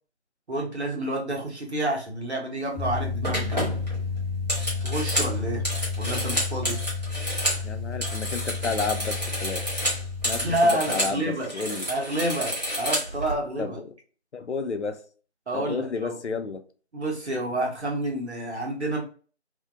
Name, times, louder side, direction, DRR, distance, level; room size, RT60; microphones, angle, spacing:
voice 1, 0.5-3.8 4.8-5.7 6.0-6.8 10.4-11.5 11.9-13.8 15.5-16.2 16.9-19.0, right 1 dB, 70° right, 1.1 m, -28 dB
sound 1, 2.6-2.8 3.2-7.6 7.9-11.2 11.4-13.3, equal, 35° right, 0.9 m, -30 dB
sound 2, 2.8-10.6, left 4 dB, ahead, 0.4 m, -31 dB
voice 2, 7.6-9.6 10.2-11.9 13.6-14.0 14.3-15.0 15.5-16.6, left 4 dB, 75° left, 0.5 m, -31 dB
2.7 x 2.5 x 2.3 m
figure-of-eight pair, 170°, 34 cm